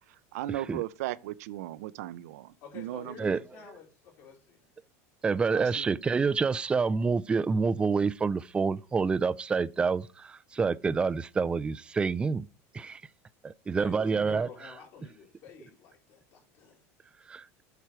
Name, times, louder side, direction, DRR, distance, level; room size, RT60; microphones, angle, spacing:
voice 1, 0.3-3.4 5.5-6.0, right 15 dB, 80° right, 0.6 m, -37 dB
voice 2, 2.6-4.7 13.8-16.8, left 6 dB, 55° left, 3.4 m, -49 dB
voice 3, 5.2-12.5 12.7-13.0 13.4-14.5 17.3-17.5, right 5 dB, 15° right, 0.3 m, -27 dB
8.2 x 4.5 x 6.0 m
supercardioid pair, 130°, 8 cm